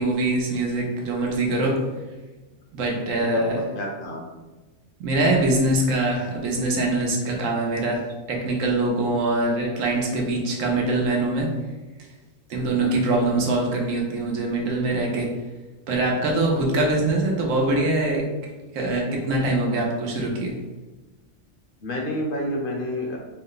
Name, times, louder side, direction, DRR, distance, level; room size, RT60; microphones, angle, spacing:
voice 1, 0.0-1.8 2.7-3.6 5.0-11.5 12.5-15.3 15.9-18.3 18.7-20.5, right 2 dB, 85° right, -1 dB, 1.1 m, -23 dB
voice 2, 3.2-4.4 12.8-13.3 16.5-16.9 21.8-23.2, left 1 dB, 55° left, 0 dB, 0.7 m, -31 dB
3.9 x 2.1 x 3.8 m, 1.2 s
omnidirectional pair, 1.3 m